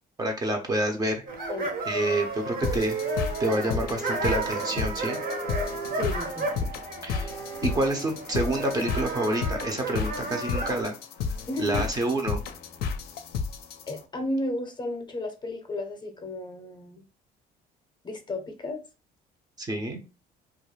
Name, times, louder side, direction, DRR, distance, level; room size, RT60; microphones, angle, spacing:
voice 1, 0.2-1.2 1.9-3.0 3.4-5.2 7.0-7.3 7.6-11.0 11.6-12.4 19.6-20.0, right 1 dB, 25° right, 0.5 m, -28 dB
sound 1, 1.3-10.8, right 3 dB, 60° right, 0.8 m, -33 dB
voice 2, 1.4-1.7 5.9-6.5 11.5-11.9 13.9-17.0 18.0-18.8, left 1 dB, 25° left, 0.6 m, -33 dB
sound 2, 2.6-14.0, left 5 dB, 70° left, 0.4 m, -33 dB
2.3 x 2.1 x 3.0 m
cardioid pair, 110°, 17 cm